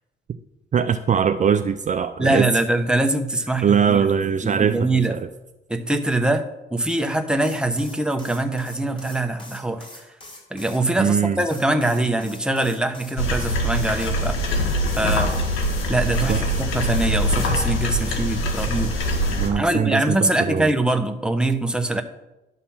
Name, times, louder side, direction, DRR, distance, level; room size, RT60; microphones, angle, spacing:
voice 1, 0.7-2.5 3.6-5.3 11.0-11.4 16.3-16.4 19.3-20.7, right 7 dB, 40° right, 9 dB, 0.5 m, -21 dB
voice 2, 2.2-4.1 4.4-5.1 5.7-10.1 10.5-14.4 15.0-15.4 15.9-18.9 19.5-22.0, right 2 dB, 5° right, 6 dB, 0.9 m, -23 dB
sound 1, 7.3-10.8 11.4-14.0 14.8-17.5, left 1 dB, 25° left, 3.8 m, -44 dB
sound 2, 13.2-19.5, equal, 90° left, 1.8 m, -23 dB
11.5 x 4.1 x 7.2 m, 0.97 s
cardioid pair, 90°, 20 cm